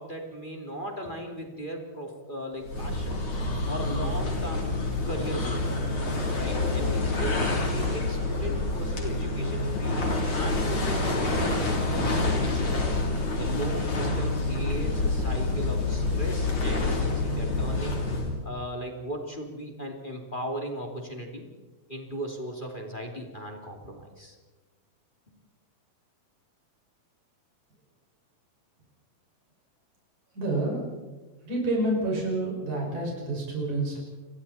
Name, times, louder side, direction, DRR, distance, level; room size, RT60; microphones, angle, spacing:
voice 1, 0.0-3.2 3.7-4.7 5.0-5.6 6.2-12.7 13.4-18.0 18.4-21.5 21.9-24.4, equal, 15° left, 2 dB, 2.5 m, -37 dB
sound 1, 2.6-18.4, left 2 dB, 35° left, 4.1 m, -27 dB
voice 2, 30.3-30.8 31.4-34.0, right 2 dB, 55° right, -3 dB, 7.4 m, -28 dB
30.0 x 22.5 x 4.3 m, 1.2 s
omnidirectional pair, 3.9 m